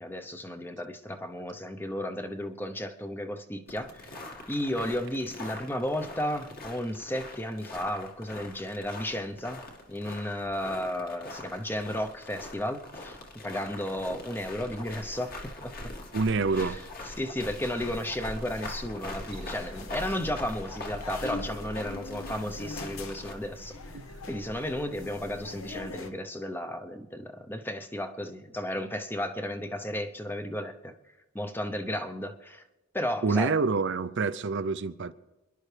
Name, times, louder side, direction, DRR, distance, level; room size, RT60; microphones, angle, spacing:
voice 1, 0.0-4.2 4.5-9.6 9.9-13.2 13.4-15.7 16.5-23.8 24.3-30.9 31.3-32.6 32.9-33.5, left 1 dB, 10° left, 0.7 m, -34 dB
sound 1, 3.7-23.3, left 2 dB, 45° left, 1.9 m, -43 dB
voice 2, 16.1-16.8 23.9-24.1 33.2-35.1, right 4 dB, 55° right, 0.5 m, -27 dB
sound 2, 17.4-26.1, left 2 dB, 70° left, 1.2 m, -42 dB
29.0 x 11.0 x 3.3 m
head